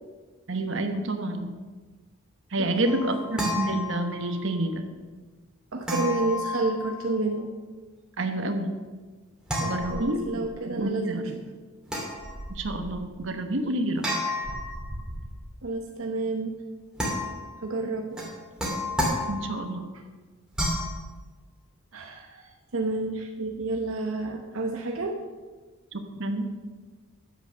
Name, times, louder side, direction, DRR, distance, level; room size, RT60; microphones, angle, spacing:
voice 1, 0.5-1.5 2.5-4.8 8.2-8.7 9.6-10.2 10.7-11.4 12.5-14.2 19.3-19.9 25.9-26.5, right 1 dB, 60° right, 5 dB, 1.2 m, -29 dB
voice 2, 2.6-3.1 5.7-7.5 9.6-11.3 15.6-16.6 17.6-18.2 21.9-25.2, right 2 dB, 75° right, 2 dB, 0.9 m, -30 dB
sound 1, 2.8-4.4 5.9-7.3 9.5-10.5 11.9-12.9 14.0-15.4 17.0-17.6 18.2-19.7 20.5-21.0, left 1 dB, 5° right, 2.3 m, -31 dB
9.1 x 8.0 x 6.8 m, 1.4 s
head